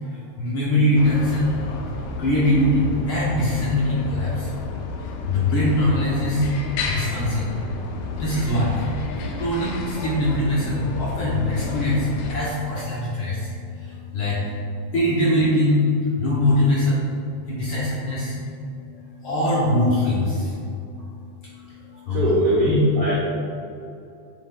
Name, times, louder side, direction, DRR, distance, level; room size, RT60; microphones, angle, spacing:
voice 1, 0.1-1.5 2.2-4.5 5.3-6.5 6.9-7.6 8.2-8.8 9.4-13.5 13.8-14.4 14.9-15.8 16.2-17.1 17.5-18.4 19.2-20.5 21.9-22.3 22.6-22.8, left 1 dB, 65° left, -6 dB, 1.4 m, -22 dB
sound 1, 0.9-12.3, left 3 dB, 80° left, 2.0 m, -31 dB
voice 2, 22.1-23.1, right 1 dB, 75° right, -8 dB, 0.9 m, -21 dB
8.3 x 3.9 x 3.7 m, 2.6 s
omnidirectional pair, 3.4 m